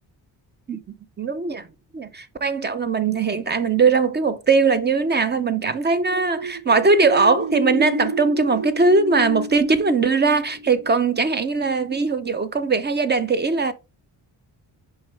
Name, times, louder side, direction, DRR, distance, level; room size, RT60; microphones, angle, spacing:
voice 1, 1.2-1.7 1.9-13.7, right 4 dB, 25° right, 0.4 m, -20 dB
sound 1, 5.7-11.4, right 1 dB, 60° right, 0.8 m, -30 dB
6.4 x 4.5 x 3.3 m
wide cardioid pair, 135°, 45 cm